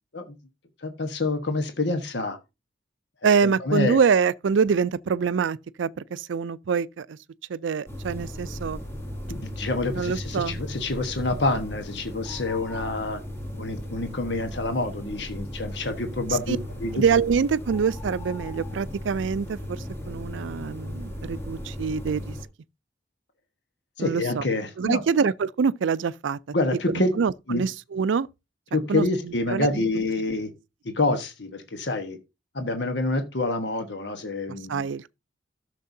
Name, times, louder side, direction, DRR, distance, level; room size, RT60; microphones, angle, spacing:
voice 1, 0.8-2.4 3.4-4.0 9.3-13.2 13.6-17.0 24.0-25.0 26.5-27.1 27.5-27.6 28.7-30.5 30.9-32.2 32.5-34.8, left 2 dB, 65° left, 1.2 m, -27 dB
voice 2, 3.2-7.2 7.5-8.8 9.9-10.6 16.3-16.6 16.9-22.4 24.0-24.4 24.8-26.4 26.9-28.3 28.9-29.8 34.7-35.1, right 6 dB, 80° right, 0.4 m, -25 dB
sound 1, 7.9-22.4, equal, 15° left, 2.3 m, -36 dB
13.0 x 6.6 x 2.7 m
head